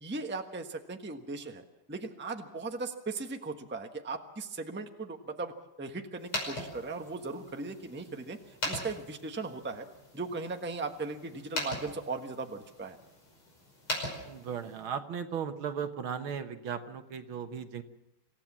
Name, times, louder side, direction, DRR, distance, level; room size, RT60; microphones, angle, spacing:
voice 1, 0.0-5.5 5.8-8.4 8.6-9.8 10.1-13.0, right 3 dB, 5° right, 4 dB, 0.9 m, -38 dB
sound 1, 6.2-14.9, left 1 dB, 70° left, 6.5 m, -41 dB
voice 2, 14.3-17.8, right 7 dB, 70° right, 8 dB, 2.0 m, -36 dB
26.5 x 15.5 x 7.4 m, 0.91 s
omnidirectional pair, 2.4 m